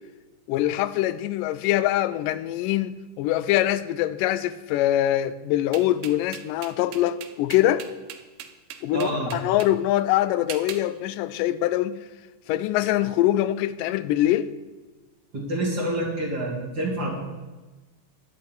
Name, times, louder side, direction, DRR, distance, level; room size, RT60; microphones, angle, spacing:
voice 1, 0.5-7.9 8.8-12.0 12.5-14.5, left 13 dB, 85° left, 2.2 m, -23 dB
sound 1, 5.7-9.7 10.5-10.9, right 9 dB, 90° right, 2.5 m, -39 dB
voice 2, 8.9-9.3 15.3-17.2, right 1 dB, 40° right, 2.3 m, -27 dB
11.0 x 5.7 x 8.8 m
omnidirectional pair, 3.7 m